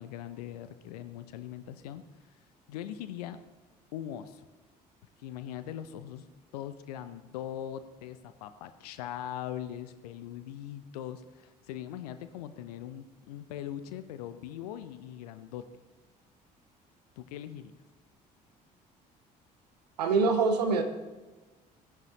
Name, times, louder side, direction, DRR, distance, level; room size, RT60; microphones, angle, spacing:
voice 1, 0.0-2.0 2.7-3.4 3.9-4.4 5.2-6.2 6.5-15.7 17.2-17.7, left 11 dB, 70° left, 11 dB, 0.7 m, -41 dB
voice 2, 20.0-20.8, right 4 dB, 75° right, 6 dB, 1.1 m, -24 dB
16.5 x 10.5 x 3.1 m, 1.2 s
figure-of-eight pair, 55°, 21 cm